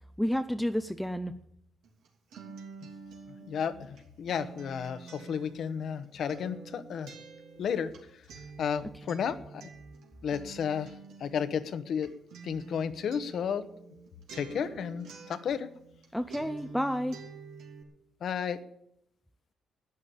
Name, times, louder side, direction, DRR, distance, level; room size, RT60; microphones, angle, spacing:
voice 1, 0.2-1.3 16.1-17.2, equal, ahead, 9 dB, 0.7 m, -30 dB
Acoustic guitar, 1.8-16.0 16.3-17.8, right 4 dB, 85° right, 3.2 m, -48 dB
voice 2, 3.5-7.1 7.6-7.9 8.6-9.7 10.2-10.9 11.2-12.1 12.4-13.6 14.3-15.7 18.2-18.6, left 7 dB, 65° left, 13 dB, 1.1 m, -32 dB
12.5 x 9.8 x 8.6 m, 0.76 s
cardioid pair, 90°, 0 cm